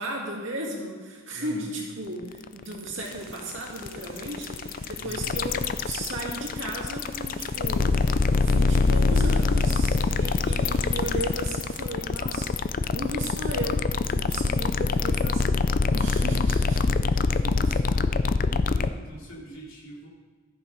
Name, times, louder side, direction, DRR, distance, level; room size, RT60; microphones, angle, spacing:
voice 1, 0.0-12.6 12.9-15.6 15.9-17.2 17.4-18.1, right 1 dB, 65° right, -3 dB, 2.6 m, -35 dB
voice 2, 1.3-1.7 5.0-5.3 17.0-18.1 18.5-20.1, right 1 dB, 75° left, -4 dB, 3.1 m, -44 dB
sound 1, 2.2-18.9, left 4 dB, 40° left, 0.4 m, -24 dB
sound 2, 3.0-11.9, right 3 dB, 85° right, 2.0 m, -49 dB
13.5 x 7.1 x 5.1 m, 1.5 s
head